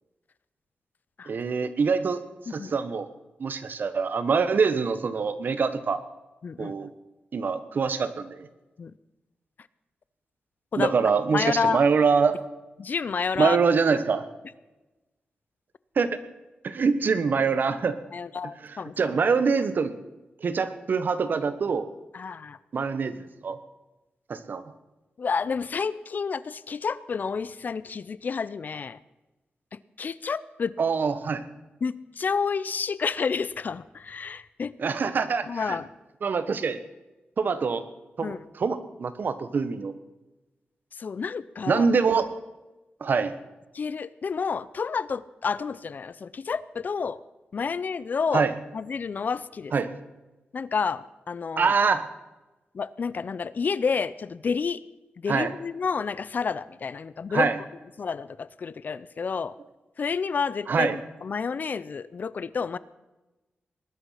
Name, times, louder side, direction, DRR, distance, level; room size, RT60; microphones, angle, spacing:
voice 1, 1.3-2.2 2.5-3.1 3.4-6.0 6.6-6.9 7.3-8.5 10.8-12.4 13.4-14.2 16.0-16.2 16.6-18.0 18.7-19.9 20.4-21.9 22.7-23.1 23.4-23.6 24.3-24.6 30.8-31.4 34.8-35.8 36.2-36.8 37.4-37.8 38.2-39.9 41.7-42.3 43.0-43.3 48.3-48.5 49.7-49.9 51.6-52.1 55.3-55.5 57.3-57.6 60.7-61.0, right 5 dB, 60° right, 12 dB, 1.2 m, -24 dB
voice 2, 6.4-6.9 8.8-8.9 10.7-10.9 11.3-11.8 12.8-13.6 18.1-19.2 22.1-22.6 25.2-29.0 30.0-30.7 31.8-34.7 35.5-35.9 38.2-38.4 41.0-41.9 43.7-47.2 47.5-48.5 48.7-49.7 50.5-51.7 52.7-54.8 55.2-57.5 58.0-59.5 60.0-62.8, left 5 dB, 55° left, 18 dB, 0.6 m, -30 dB
20.0 x 11.5 x 5.8 m, 1.1 s
wide cardioid pair, 100°, 4 cm